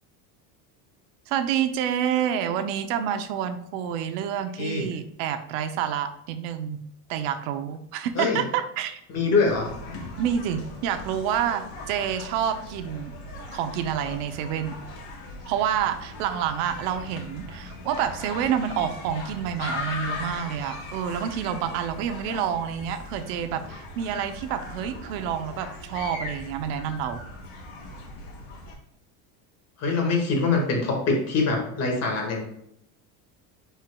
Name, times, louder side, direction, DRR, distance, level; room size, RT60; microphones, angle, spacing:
voice 1, 1.3-6.8 7.1-9.0 10.2-13.1 13.5-14.8 15.5-27.2, right 9 dB, 85° right, 9 dB, 0.8 m, -28 dB
voice 2, 9.1-9.7 29.8-32.4, left 3 dB, 40° left, 0 dB, 1.9 m, -24 dB
sound 1, 9.4-28.7, left 2 dB, 90° left, 2.0 m, -39 dB
9.1 x 4.6 x 2.3 m, 0.76 s
cardioid pair, 155°, 38 cm